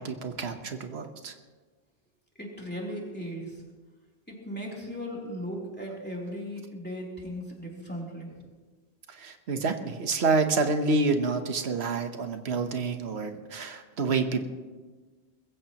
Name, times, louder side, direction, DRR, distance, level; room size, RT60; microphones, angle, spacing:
voice 1, 0.0-1.3 9.2-14.4, right 3 dB, 90° right, 7 dB, 1.3 m, -28 dB
voice 2, 2.3-3.6 4.3-8.5, equal, 10° left, -3 dB, 3.2 m, -37 dB
21.5 x 15.5 x 3.0 m, 1.3 s
omnidirectional pair, 1.1 m